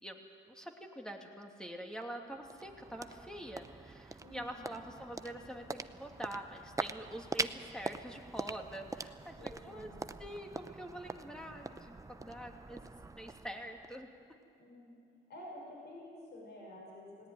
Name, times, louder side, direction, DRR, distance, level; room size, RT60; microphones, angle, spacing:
voice 1, 0.0-9.9 10.2-12.8 13.1-14.1, right 1 dB, 5° left, 2 dB, 2.7 m, -45 dB
sound 1, 2.0-14.4, right 3 dB, 15° right, 0.7 m, -44 dB
voice 2, 4.2-4.7 9.4-10.0 14.6-15.0 15.3-17.3, left 1 dB, 55° left, -2 dB, 6.1 m, -50 dB
18.5 x 17.5 x 9.3 m, 2.4 s
cardioid pair, 90°, 20 cm